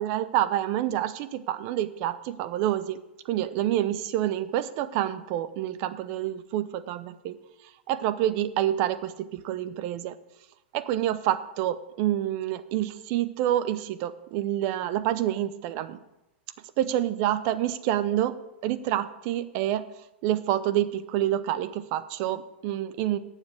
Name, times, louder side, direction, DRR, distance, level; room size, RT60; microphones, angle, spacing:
voice 1, 0.0-3.0 3.3-7.4 7.9-10.2 10.7-16.0 16.8-18.3 18.6-19.8 20.2-23.2, right 12 dB, 40° right, 14 dB, 0.7 m, -27 dB
8.7 x 7.4 x 7.8 m, 0.94 s
supercardioid pair, 155°, 6 cm